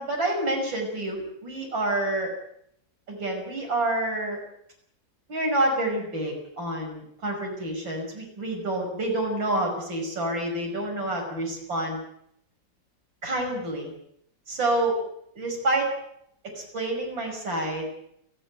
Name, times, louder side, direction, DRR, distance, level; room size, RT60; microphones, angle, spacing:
voice 1, 0.0-2.3 3.1-4.4 5.3-12.0 13.2-14.0 14.5-15.0 15.3-15.9 16.6-17.9, right 1 dB, 75° right, 1 dB, 6.6 m, -28 dB
30.0 x 10.0 x 9.2 m, 0.72 s
omnidirectional pair, 2.1 m